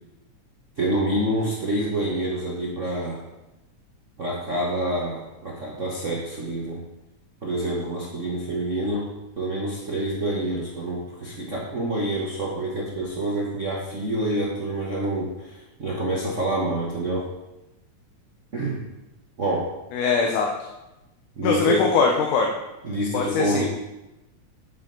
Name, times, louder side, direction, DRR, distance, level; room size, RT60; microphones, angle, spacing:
voice 1, 0.8-3.2 4.2-6.8 7.4-9.1 9.4-17.3 18.5-18.8 19.4-19.7 21.4-21.8 22.8-23.7, right 1 dB, 65° right, -4 dB, 0.7 m, -27 dB
voice 2, 19.9-20.5 21.4-22.5 23.1-23.7, left 5 dB, 90° left, 1 dB, 2.4 m, -21 dB
9.5 x 7.7 x 3.9 m, 0.98 s
omnidirectional pair, 3.4 m